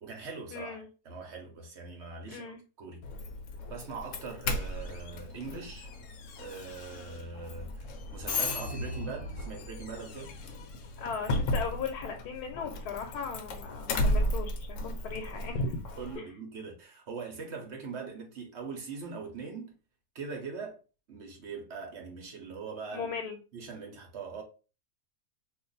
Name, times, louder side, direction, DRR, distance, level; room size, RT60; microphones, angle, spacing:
voice 1, 0.0-3.0 3.7-5.9 6.4-10.3 16.0-19.8 20.1-20.8 21.1-23.1 23.5-24.4, right 5 dB, 55° right, 1.0 m, -42 dB
voice 2, 0.5-0.9 2.3-2.6 11.0-15.9 16.2-16.3 22.9-23.4, left 5 dB, 85° left, 1.1 m, -37 dB
Doorbell, 3.0-16.2, left 1 dB, 65° left, 0.9 m, -35 dB
2.5 x 2.5 x 3.8 m
omnidirectional pair, 1.6 m